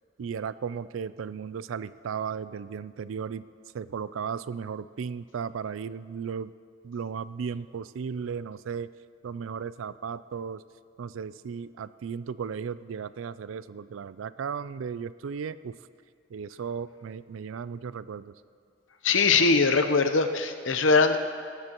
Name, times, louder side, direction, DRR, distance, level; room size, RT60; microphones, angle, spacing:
voice 1, 0.2-3.5 3.7-6.5 6.8-8.9 9.2-10.6 11.0-15.7 16.3-18.3, right 6 dB, 85° right, 16 dB, 0.4 m, -35 dB
voice 2, 19.0-21.2, left 4 dB, 75° left, 8 dB, 0.8 m, -21 dB
19.0 x 14.5 x 3.0 m, 2.2 s
head